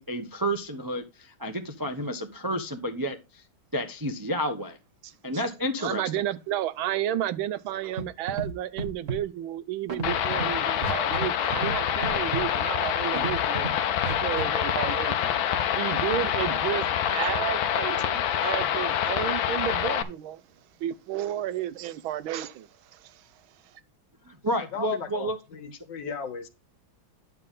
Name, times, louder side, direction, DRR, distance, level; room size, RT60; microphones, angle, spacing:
voice 1, 0.0-3.4 3.7-4.8 5.2-6.1 24.3-25.4, equal, 25° right, 0.4 m, -30 dB
voice 2, 5.0-5.4 5.8-13.7 14.1-15.3 15.8-20.4 20.8-23.3 23.6-23.8, right 12 dB, 85° right, 1.5 m, -32 dB
Scratching (performance technique), 8.0-8.1 8.3-8.5 8.8-9.2 9.9-10.4 10.8-11.3 11.5-11.7 12.0-12.4 13.1-13.7 14.0-14.4, right 3 dB, 45° right, 1.5 m, -31 dB
sound 1, 10.0-20.0, left 9 dB, 80° left, 1.6 m, -26 dB
voice 3, 24.7-26.5, left 5 dB, 65° left, 1.8 m, -36 dB
9.8 x 7.0 x 3.7 m
omnidirectional pair, 2.2 m